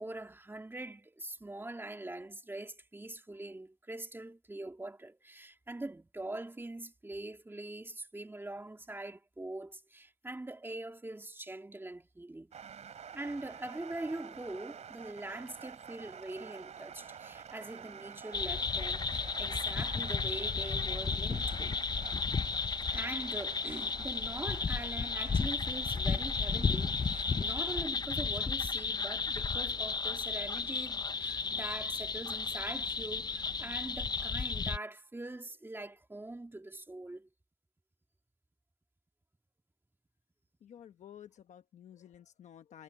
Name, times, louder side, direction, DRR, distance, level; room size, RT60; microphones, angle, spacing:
voice 1, 0.0-12.5 13.1-21.7 22.9-37.3, right 2 dB, 20° right, 2.3 m, -43 dB
sound 1, 12.5-27.8, right 7 dB, 75° right, 3.3 m, -49 dB
sound 2, 18.3-34.8, left 5 dB, 35° left, 0.6 m, -33 dB
voice 2, 40.6-42.8, left 10 dB, 85° left, 1.1 m, -53 dB
cardioid pair, 75°, 12 cm